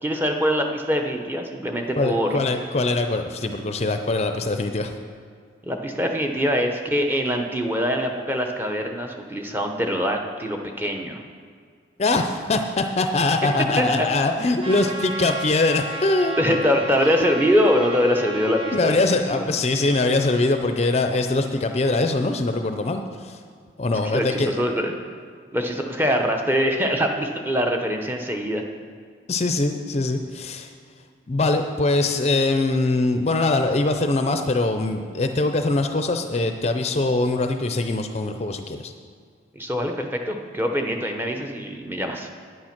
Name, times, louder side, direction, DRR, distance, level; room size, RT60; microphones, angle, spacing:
voice 1, 0.0-2.4 5.7-11.2 13.8-14.1 16.4-19.4 24.0-24.9 25.5-28.6 39.5-42.3, equal, 10° right, 2 dB, 0.8 m, -23 dB
voice 2, 2.0-4.9 12.0-16.4 18.7-23.4 23.8-24.6 29.3-30.7 31.3-38.9, left 2 dB, 35° left, 6 dB, 0.5 m, -22 dB
Trumpet, 14.6-18.8, right 1 dB, 25° right, 1.5 m, -33 dB
9.3 x 8.8 x 5.9 m, 2.1 s
head